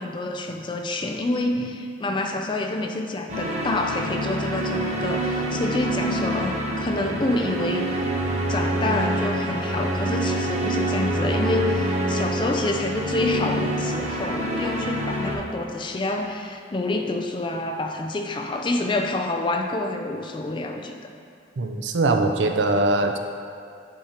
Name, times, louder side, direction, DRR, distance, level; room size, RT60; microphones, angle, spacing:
voice 1, 0.0-7.9 8.5-21.0, left 2 dB, 25° left, 3 dB, 0.4 m, -27 dB
sound 1, 3.3-15.3, right 1 dB, 40° right, 0.8 m, -26 dB
voice 2, 21.6-23.2, right 2 dB, 85° right, 5 dB, 0.5 m, -21 dB
8.3 x 5.0 x 2.9 m, 2.5 s
head